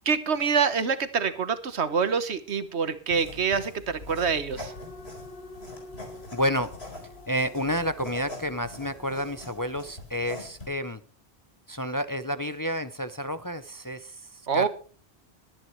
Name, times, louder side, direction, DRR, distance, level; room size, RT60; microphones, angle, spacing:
voice 1, 0.0-4.7 14.5-14.7, right 6 dB, 80° right, 12 dB, 1.5 m, -26 dB
sound 1, 3.1-10.7, left 2 dB, 70° left, 4.7 m, -44 dB
sound 2, 4.6-9.9, left 1 dB, 50° left, 2.5 m, -48 dB
voice 2, 6.3-6.7 7.3-11.0 11.7-14.7, equal, 25° left, 11 dB, 0.5 m, -30 dB
22.0 x 9.7 x 3.2 m, 0.38 s
omnidirectional pair, 1.1 m